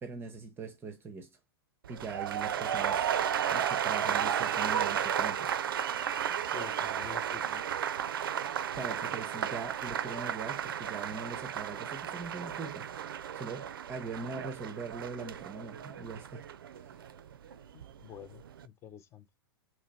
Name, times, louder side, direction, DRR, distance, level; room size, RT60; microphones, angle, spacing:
voice 1, 0.0-1.4 1.9-3.2 3.5-5.5 8.7-16.4 16.7-16.9, right 4 dB, 15° right, 0.6 m, -42 dB
sound 1, 1.8-17.9 18.2-18.6, right 9 dB, 60° right, 0.4 m, -33 dB
voice 2, 6.5-7.6 17.7-19.3, left 10 dB, 20° left, 0.5 m, -48 dB
3.0 x 3.0 x 4.0 m
figure-of-eight pair, 105°, 13 cm